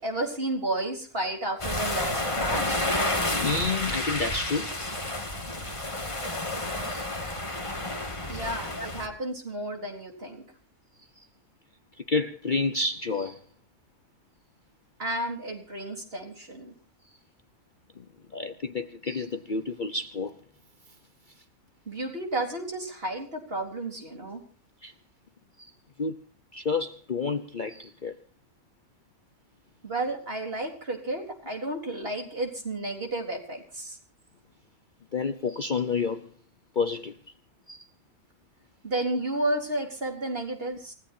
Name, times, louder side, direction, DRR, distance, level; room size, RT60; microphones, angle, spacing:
voice 1, 0.0-2.9 8.3-10.4 15.0-16.7 21.9-24.4 29.8-34.0 38.8-40.9, right 1 dB, 45° right, 4.2 m, -32 dB
sound 1, 1.6-9.1, left 1 dB, 20° left, 2.3 m, -30 dB
voice 2, 3.4-4.9 6.9-7.0 8.8-8.9 12.1-13.4 18.3-20.3 24.8-24.9 26.0-26.1 26.5-28.1 35.1-36.3 36.8-37.1 37.7-37.8, left 4 dB, 40° left, 0.9 m, -29 dB
28.5 x 17.5 x 2.8 m
omnidirectional pair, 1.4 m